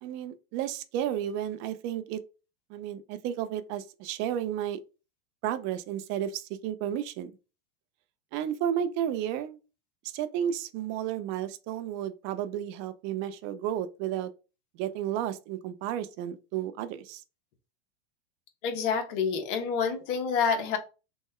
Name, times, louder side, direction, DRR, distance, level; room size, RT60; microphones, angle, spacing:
voice 1, 0.0-2.2 2.7-4.8 5.4-7.3 8.3-9.6 10.1-14.3 14.8-17.2, right 10 dB, 35° right, 0.4 m, -32 dB
voice 2, 18.6-20.8, left 6 dB, 55° left, 1.0 m, -28 dB
3.1 x 2.0 x 3.5 m
supercardioid pair, 135°, 31 cm